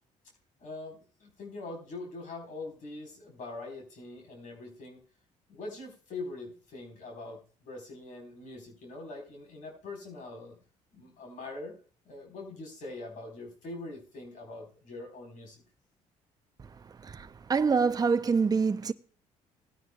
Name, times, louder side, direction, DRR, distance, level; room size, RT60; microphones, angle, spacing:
voice 1, 0.6-5.0 5.5-10.6 10.9-11.8 12.1-15.6, left 2 dB, 65° left, 4.2 m, -43 dB
voice 2, 17.0-18.9, right 5 dB, 25° right, 0.6 m, -26 dB
18.0 x 9.6 x 2.3 m
supercardioid pair, 75°, 15 cm